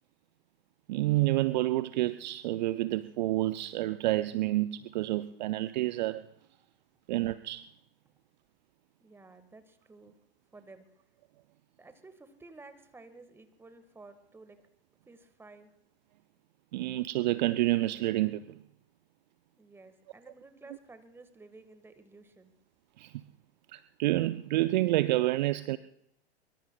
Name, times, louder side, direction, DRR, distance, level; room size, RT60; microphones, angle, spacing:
voice 1, 0.9-6.3 7.1-7.6 16.7-18.6 23.0-23.1 23.7-25.8, right 17 dB, 45° right, 15 dB, 0.5 m, -29 dB
voice 2, 9.0-10.1 10.5-10.9 11.8-14.6 15.1-15.7 19.6-22.5, right 3 dB, 5° right, 10 dB, 1.5 m, -53 dB
23.5 x 23.5 x 2.3 m, 0.79 s
figure-of-eight pair, 105°, 33 cm